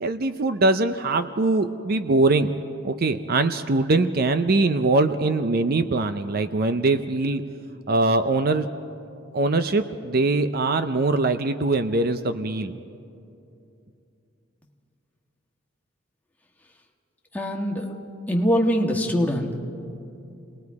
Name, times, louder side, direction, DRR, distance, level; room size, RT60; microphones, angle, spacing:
voice 1, 0.0-2.5 2.8-7.4 7.9-8.7 9.3-12.8, right 2 dB, 50° right, 10 dB, 0.6 m, -22 dB
voice 2, 17.3-18.0 18.3-19.6, equal, 10° left, 0 dB, 1.5 m, -23 dB
29.5 x 19.5 x 4.8 m, 2.6 s
head